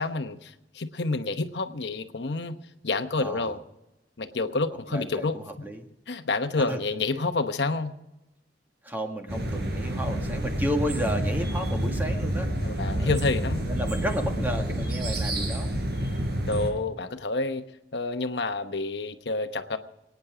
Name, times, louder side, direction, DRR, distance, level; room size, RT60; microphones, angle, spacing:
voice 1, 0.0-2.6 2.8-3.6 4.2-5.7 6.1-7.9 12.6-13.6 16.5-17.6 17.9-19.8, left 3 dB, 70° left, 8 dB, 1.0 m, -29 dB
voice 2, 3.1-3.5 4.9-5.9 6.6-6.8 8.8-12.5 13.0-13.2 13.6-16.2, equal, 10° right, 3 dB, 1.7 m, -32 dB
sound 1, 9.3-16.7, right 1 dB, 65° right, 4.4 m, -28 dB
24.5 x 9.5 x 5.0 m, 0.92 s
head